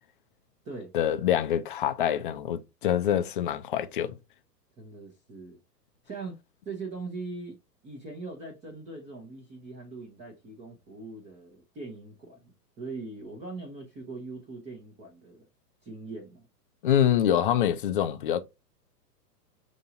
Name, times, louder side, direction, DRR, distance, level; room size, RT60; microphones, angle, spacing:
voice 1, 0.9-4.2 16.8-18.4, left 10 dB, 35° left, 0.4 m, -25 dB
voice 2, 4.8-5.6 6.1-6.4 6.6-7.6 7.8-12.5 12.8-15.4 15.8-16.5, right 3 dB, 15° right, 0.6 m, -41 dB
5.4 x 2.9 x 2.6 m
hypercardioid pair, 125°, 49 cm